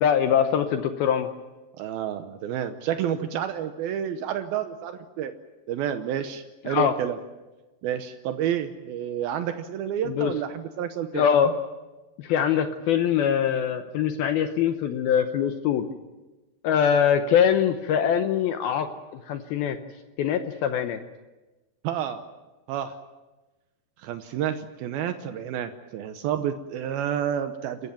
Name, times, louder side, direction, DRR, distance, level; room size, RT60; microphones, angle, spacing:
voice 1, 0.0-1.3 6.6-6.9 10.1-10.3 11.1-11.6 12.2-15.9 16.6-18.9 19.3-19.8 20.2-21.0, left 8 dB, 80° left, 8 dB, 2.1 m, -23 dB
voice 2, 1.8-5.3 5.7-7.2 7.8-11.3 21.8-22.2 22.7-22.9 24.0-27.9, right 9 dB, 90° right, 8 dB, 2.1 m, -29 dB
29.5 x 14.5 x 9.1 m, 1.1 s
omnidirectional pair, 5.5 m